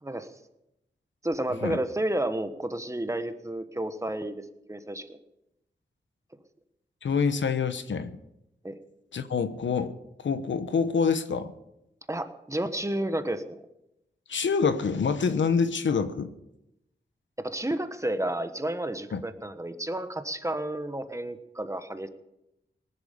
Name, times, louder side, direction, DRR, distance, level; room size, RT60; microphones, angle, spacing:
voice 1, 1.2-5.2 8.6-8.8 12.1-13.6 17.4-22.1, right 1 dB, 15° right, 9 dB, 1.3 m, -31 dB
voice 2, 7.0-8.2 9.1-9.9 10.2-11.5 14.3-16.3 19.1-19.2, left 5 dB, 85° left, 11 dB, 1.0 m, -26 dB
19.0 x 11.0 x 5.3 m, 0.86 s
wide cardioid pair, 90°, 19 cm